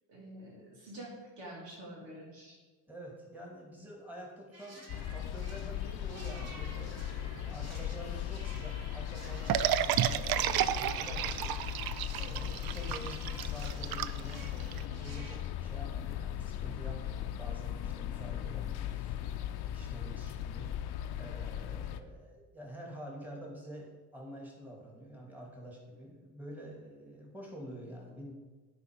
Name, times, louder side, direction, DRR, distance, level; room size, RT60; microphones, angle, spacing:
voice 1, 0.1-2.6, right 1 dB, 80° right, -4 dB, 2.8 m, -47 dB
voice 2, 2.9-28.3, equal, 5° right, -2 dB, 2.5 m, -48 dB
sound 1, 4.5-15.4, right 2 dB, 35° right, 2.0 m, -53 dB
sound 2, 4.9-22.0, left 10 dB, 60° left, 0.7 m, -38 dB
sound 3, 9.5-14.8, right 11 dB, 60° right, 0.5 m, -31 dB
9.5 x 4.3 x 5.2 m, 1.3 s
supercardioid pair, 70°, 43 cm